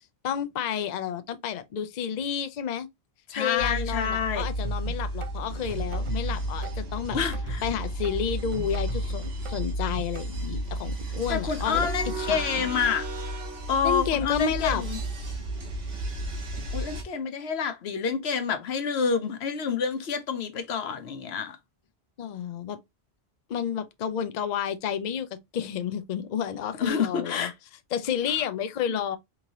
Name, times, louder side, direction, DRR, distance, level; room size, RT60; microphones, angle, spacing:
voice 1, 0.2-2.9 3.3-7.2 7.6-12.7 13.8-14.8 22.2-22.8 23.5-25.3 25.5-27.5 27.9-29.2, left 8 dB, 55° left, 0.5 m, -30 dB
voice 2, 3.3-4.5 7.1-7.6 11.3-13.0 13.7-15.0 16.7-21.6 26.8-27.5 28.9-29.0, left 6 dB, 80° left, 1.0 m, -28 dB
sound 1, 3.6-17.0, right 1 dB, 80° right, 1.5 m, -32 dB
sound 2, 4.6-10.3, right 5 dB, 50° right, 0.3 m, -43 dB
3.8 x 3.0 x 2.7 m
omnidirectional pair, 1.1 m